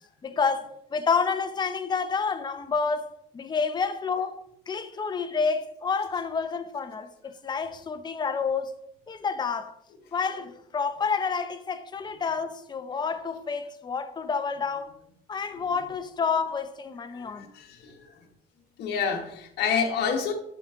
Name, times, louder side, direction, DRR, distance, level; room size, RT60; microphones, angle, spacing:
voice 1, 0.2-8.7 9.1-9.7 10.1-14.9 15.3-17.4, left 5 dB, 25° left, 0.6 m, -29 dB
voice 2, 17.1-18.1 18.8-20.3, left 6 dB, 75° left, 1.2 m, -28 dB
6.9 x 5.9 x 3.6 m
cardioid pair, 110°, 17 cm